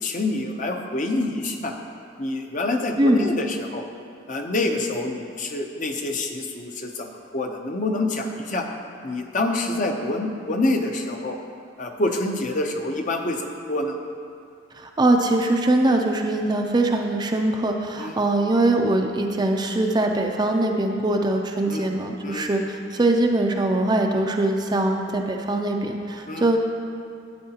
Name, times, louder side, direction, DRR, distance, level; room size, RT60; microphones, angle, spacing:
voice 1, 0.0-1.8 2.2-3.9 4.3-8.7 9.0-11.4 11.8-13.4 13.7-14.0 18.0-18.2 21.7-21.9 22.2-22.5 26.3-26.4, left 2 dB, 40° left, 3 dB, 0.7 m, -26 dB
voice 2, 3.0-3.3 14.7-26.6, right 2 dB, 20° right, 2 dB, 0.4 m, -22 dB
12.0 x 8.7 x 2.8 m, 2.5 s
head